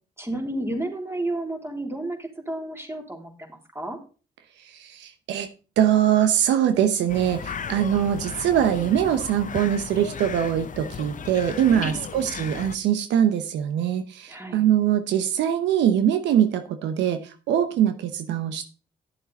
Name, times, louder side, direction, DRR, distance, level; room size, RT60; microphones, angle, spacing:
voice 1, 0.2-4.0 11.7-12.0 14.3-14.6, right 1 dB, 15° right, 2 dB, 3.5 m, -32 dB
voice 2, 4.7-5.5 5.8-18.6, right 10 dB, 85° right, 9 dB, 0.9 m, -22 dB
sound 1, 7.1-12.8, left 7 dB, 45° left, 0.8 m, -35 dB
11.0 x 7.3 x 4.1 m, 0.35 s
supercardioid pair, 55°, 18 cm